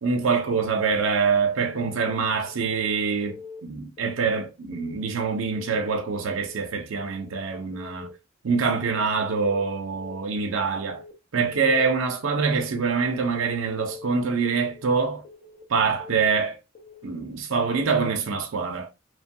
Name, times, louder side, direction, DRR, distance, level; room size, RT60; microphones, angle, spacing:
voice 1, 0.0-8.1 8.4-11.0 11.3-15.2 15.7-16.6 17.0-18.9, right 5 dB, 90° right, 0.5 m, -25 dB
Keyboard (musical) / Alarm, 1.7-2.1 2.5-2.8 3.2-3.6 4.0-4.4 4.7-5.1 5.5-5.9 6.2-6.6 7.0-7.4 7.7-8.1 8.5-8.9 9.2-9.6 10.0-10.4 10.7-11.1 11.5-11.9 12.2-12.6 13.0-13.4 13.7-14.1 14.5-14.9 15.2-15.6 16.0-16.4 16.7-17.1 17.5-17.9, left 4 dB, 30° left, 0.7 m, -45 dB
3.1 x 2.2 x 2.6 m
head